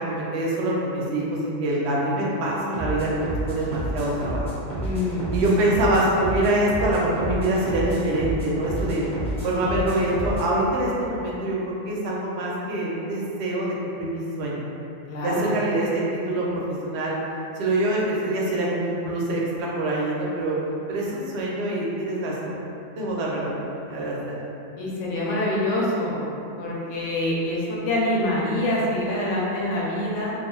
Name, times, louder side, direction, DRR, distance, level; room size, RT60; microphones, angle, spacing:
voice 1, 0.0-3.2 3.5-4.7 5.3-9.0 9.4-11.6 11.8-14.7 15.2-17.2 17.6-20.6 20.9-22.6 23.0-24.4, right 1 dB, 65° right, -4 dB, 0.8 m, -25 dB
sound 1, 2.7-10.5, equal, 5° left, 0.6 m, -30 dB
voice 2, 4.7-5.4 15.1-15.5 24.8-26.2 26.6-30.3, left 1 dB, 80° left, -5 dB, 0.9 m, -25 dB
2.4 x 2.2 x 3.0 m, 2.7 s
omnidirectional pair, 1.3 m